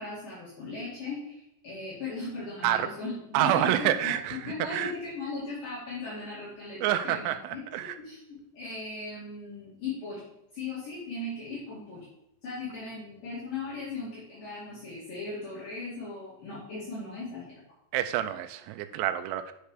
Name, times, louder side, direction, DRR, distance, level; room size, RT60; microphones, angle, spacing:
voice 1, 0.0-4.1 4.4-12.1 12.4-17.6, left 3 dB, 50° left, -10 dB, 3.8 m, -38 dB
voice 2, 3.3-4.9 6.8-7.9 17.9-19.5, right 12 dB, 85° right, 9 dB, 2.8 m, -28 dB
9.2 x 6.6 x 3.3 m, 0.82 s
omnidirectional pair, 5.6 m